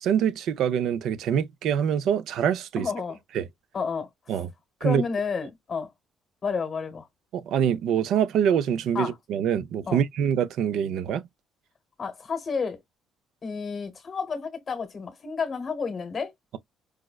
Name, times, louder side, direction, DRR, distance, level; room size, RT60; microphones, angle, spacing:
voice 1, 0.0-2.9 3.3-3.5 4.3-4.5 4.8-5.0 7.3-11.2, right 8 dB, 70° right, 0.4 m, -25 dB
voice 2, 2.8-3.2 3.7-4.1 4.8-5.9 6.4-7.1 8.9-9.1 9.9-10.0 12.0-12.8 13.4-16.3, left 5 dB, 35° left, 0.9 m, -30 dB
4.8 x 2.1 x 2.2 m
cardioid pair, 145°, 0 cm